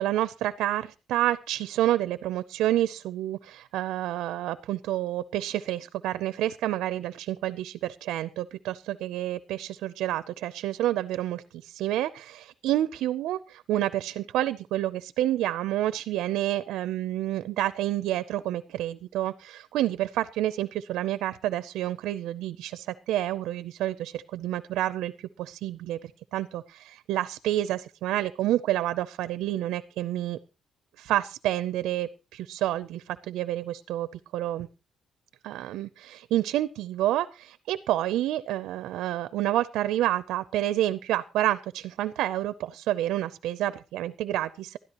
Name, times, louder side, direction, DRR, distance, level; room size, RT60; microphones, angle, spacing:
voice 1, 0.0-25.1 25.4-26.0 26.3-30.4 31.0-34.1 34.3-34.7 35.4-44.8, right 13 dB, 90° right, 15 dB, 0.6 m, -29 dB
19.5 x 13.0 x 3.0 m, 0.31 s
cardioid pair, 90°, 0 cm